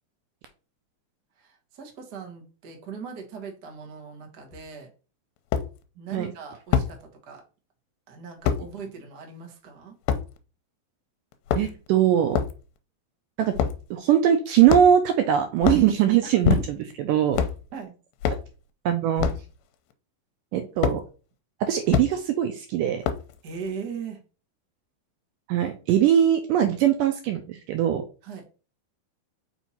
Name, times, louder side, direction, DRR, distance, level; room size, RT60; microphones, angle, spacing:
voice 1, 1.4-4.9 5.9-7.4 8.1-9.9 16.5-16.6 17.7-17.9 23.4-24.2 28.2-28.4, right 5 dB, 60° right, 2 dB, 1.0 m, -39 dB
sound 1, 4.5-4.6 5.5-5.7 6.7-6.9 8.4-8.6 10.1-10.2 11.3-11.9 12.3-12.6 13.5-13.8 14.7-15.1 15.6-15.9 16.4-16.9 17.3-17.6 18.2-18.5 19.2-19.4 20.8-21.0 21.9-22.1 23.0-23.3, left 8 dB, 80° left, 2.3 m, -24 dB
voice 2, 11.6-12.4 13.4-13.5 13.9-16.6 17.1-17.4 18.9-19.3 20.5-21.0 21.6-23.0 25.5-28.0, right 10 dB, 80° right, 7 dB, 2.0 m, -21 dB
5.6 x 4.4 x 4.2 m, 0.35 s
omnidirectional pair, 4.3 m